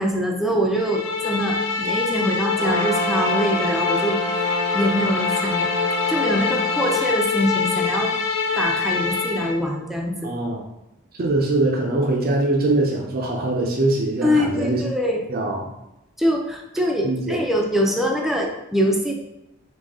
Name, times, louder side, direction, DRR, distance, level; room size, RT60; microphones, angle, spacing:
voice 1, 0.0-4.2 4.7-5.7 6.1-8.1 8.6-10.3 14.2-15.2 16.2-19.1, equal, ahead, 0 dB, 0.5 m, -23 dB
sound 1, 0.7-9.6, left 5 dB, 90° left, 0.6 m, -24 dB
Trumpet, 2.5-7.1, right 1 dB, 15° left, 0.9 m, -28 dB
voice 2, 10.2-10.6 11.1-14.8 15.3-15.7 17.0-17.4, right 2 dB, 50° right, 0 dB, 0.6 m, -22 dB
4.0 x 2.8 x 3.6 m, 0.89 s
head